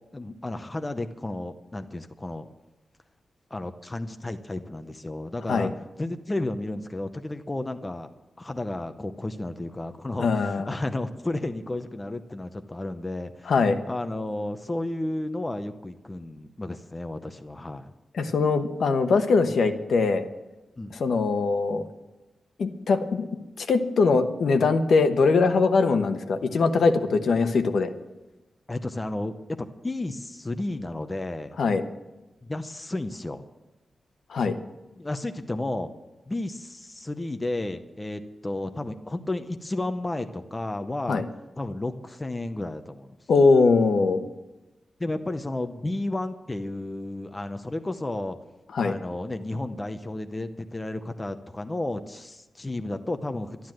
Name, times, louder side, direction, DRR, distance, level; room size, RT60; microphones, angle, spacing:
voice 1, 0.1-2.5 3.5-5.7 6.0-8.1 8.4-13.5 13.9-17.9 20.8-21.0 28.7-31.6 32.4-33.5 35.0-35.9 36.3-41.2 41.6-43.2 45.0-48.4 48.8-53.7, left 2 dB, 15° left, 8 dB, 0.6 m, -32 dB
voice 2, 10.2-10.7 13.5-13.8 18.1-20.2 20.9-21.8 22.6-23.3 23.6-27.9 31.6-31.8 34.3-34.6 41.1-41.2 43.3-44.2 48.7-48.9, left 4 dB, 70° left, 8 dB, 1.0 m, -22 dB
12.0 x 11.5 x 7.6 m, 1.1 s
wide cardioid pair, 175°, 0 cm